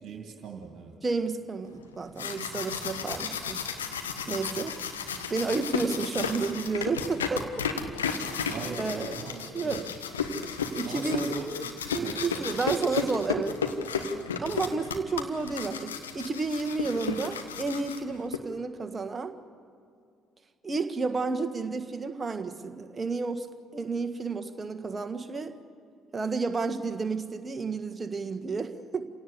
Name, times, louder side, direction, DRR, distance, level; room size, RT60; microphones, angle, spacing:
voice 1, 0.0-0.9 8.4-10.0 10.8-12.4 14.3-14.4, right 4 dB, 50° right, 2 dB, 2.5 m, -39 dB
voice 2, 1.0-3.6 4.3-4.8 5.3-7.5 8.1-8.4 8.8-9.2 9.5-9.8 10.7-11.3 11.9-13.6 14.4-19.4 20.6-23.5 23.7-25.6 26.1-29.1, right 4 dB, 25° right, 7 dB, 1.6 m, -31 dB
sound 1, 1.9-18.4, left 6 dB, 80° left, 1.3 m, -33 dB
29.0 x 17.0 x 8.3 m, 2.4 s
figure-of-eight pair, 50°, 0 cm